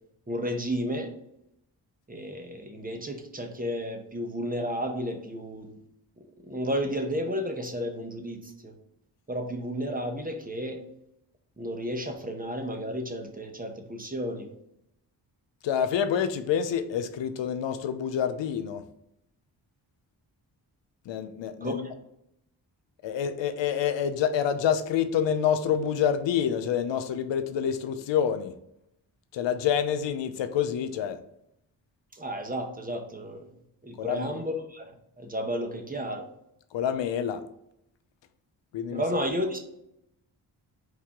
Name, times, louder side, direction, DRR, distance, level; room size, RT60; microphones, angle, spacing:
voice 1, 0.3-1.1 2.1-5.7 6.2-8.7 9.3-10.8 11.6-14.5 21.6-21.8 32.1-33.5 33.8-34.9 35.2-36.3 38.9-39.6, equal, 20° right, 1.1 m, -32 dB
voice 2, 15.6-18.8 21.1-21.8 23.0-28.5 29.3-31.2 34.0-34.4 36.7-37.4 38.7-39.0, left 8 dB, 75° left, 0.7 m, -27 dB
4.8 x 2.8 x 3.6 m
supercardioid pair, 50°, 45 cm